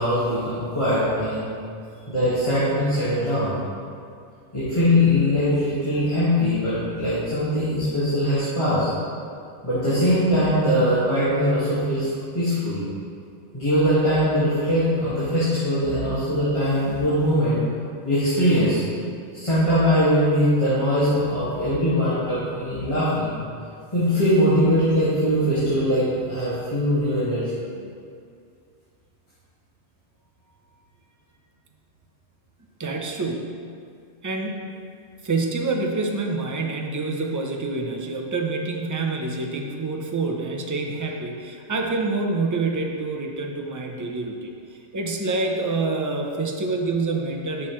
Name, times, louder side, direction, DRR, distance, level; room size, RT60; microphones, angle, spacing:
voice 1, 0.0-1.4 2.1-3.5 4.5-8.9 9.6-12.1 12.3-12.8 13.5-17.6 18.1-18.8 19.3-23.3 23.9-27.6, equal, 25° left, -13 dB, 1.9 m, -21 dB
voice 2, 32.8-33.6 34.2-34.6 35.2-44.5 44.9-47.7, right 3 dB, 25° right, 1 dB, 0.4 m, -27 dB
9.6 x 6.1 x 3.2 m, 2.3 s
omnidirectional pair, 1.2 m